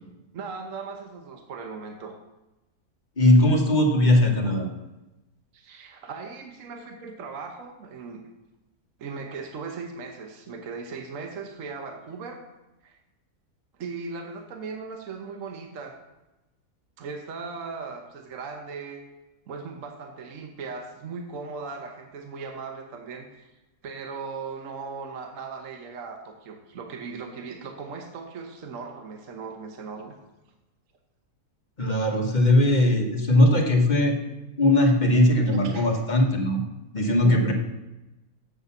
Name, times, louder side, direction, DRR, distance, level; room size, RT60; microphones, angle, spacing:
voice 1, 0.3-2.1 5.5-8.2 9.0-12.4 12.8-13.0 13.8-16.0 17.0-19.0 19.5-23.5 23.8-30.1 35.5-35.9 36.9-37.4, right 5 dB, 60° right, 4 dB, 1.3 m, -38 dB
voice 2, 3.2-4.7 31.8-34.2 34.6-36.6 36.9-37.5, left 1 dB, 30° left, 2 dB, 1.3 m, -19 dB
7.8 x 6.6 x 7.1 m, 1.0 s
omnidirectional pair, 1.6 m